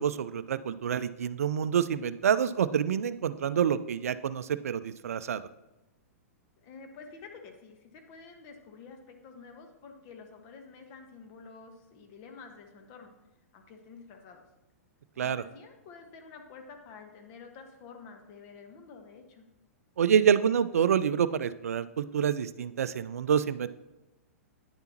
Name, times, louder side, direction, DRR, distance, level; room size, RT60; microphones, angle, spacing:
voice 1, 0.0-5.4 15.2-15.4 20.0-23.7, right 8 dB, 70° right, 14 dB, 0.4 m, -27 dB
voice 2, 6.6-13.1 13.5-14.4 15.1-19.4, left 5 dB, 40° left, 4 dB, 1.3 m, -49 dB
9.7 x 6.9 x 2.9 m, 1.0 s
figure-of-eight pair, 110°, 8 cm